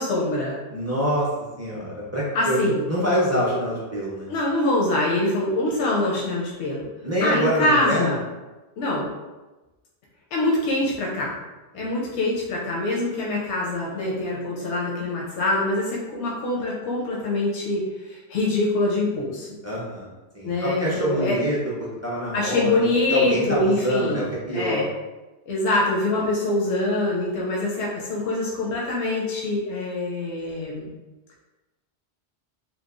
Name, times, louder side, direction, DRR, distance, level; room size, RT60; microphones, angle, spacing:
voice 1, 0.0-0.6 2.3-2.9 4.3-6.9 7.2-8.2 8.8-9.1 10.3-11.4 11.7-19.5 20.4-21.4 22.3-24.2 24.5-24.9 25.5-30.9, left 2 dB, 85° left, -4 dB, 0.9 m, -24 dB
voice 2, 0.7-4.3 7.0-8.2 11.7-11.8 19.6-24.8, equal, 25° right, -7 dB, 0.4 m, -26 dB
2.9 x 2.1 x 2.3 m, 1.1 s
omnidirectional pair, 1.1 m